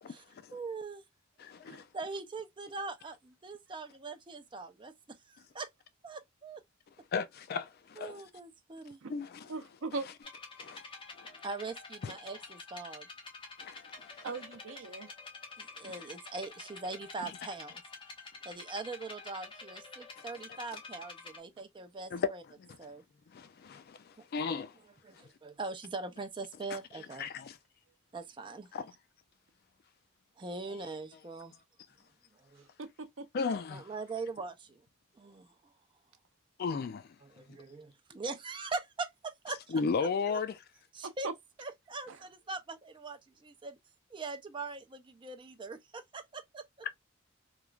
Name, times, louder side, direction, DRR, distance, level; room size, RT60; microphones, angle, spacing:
voice 1, 0.5-1.0 1.9-5.7 6.0-6.6 8.0-9.0 11.4-13.1 15.6-17.8 18.4-22.4 22.8-23.0 25.0-27.3 28.1-28.7 30.4-31.5 32.4-32.7 33.7-34.8 35.1-35.5 37.2-39.8 40.9-41.3 41.6-43.8 44.1-46.7, right 3 dB, 25° right, 0.4 m, -42 dB
voice 2, 1.4-1.9 7.1-8.2 9.1-9.5 10.6-10.8 12.0-12.1 13.6-14.3 22.1-22.3 23.3-24.7 27.2-27.6 28.7-28.9 33.3-33.9 36.6-37.1 39.7-40.6, left 5 dB, 50° left, 0.3 m, -35 dB
voice 3, 9.5-10.1 14.2-15.1 32.8-33.3 41.0-41.3 42.1-42.2, right 3 dB, 70° right, 0.6 m, -39 dB
sound 1, 10.2-21.4, left 3 dB, 25° left, 0.9 m, -48 dB
3.0 x 2.4 x 2.2 m
head